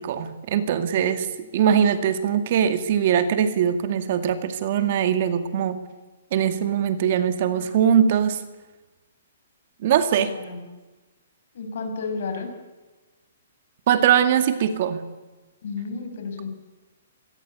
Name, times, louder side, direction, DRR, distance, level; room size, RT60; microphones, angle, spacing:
voice 1, 0.0-5.8 6.3-8.4 9.8-10.3 13.9-15.0, right 8 dB, 40° right, 10 dB, 2.1 m, -21 dB
voice 2, 10.1-10.6 11.5-12.5 15.6-16.5, left 4 dB, 60° left, 6 dB, 7.0 m, -32 dB
26.0 x 19.5 x 8.5 m, 1.2 s
hypercardioid pair, 170°, 0 cm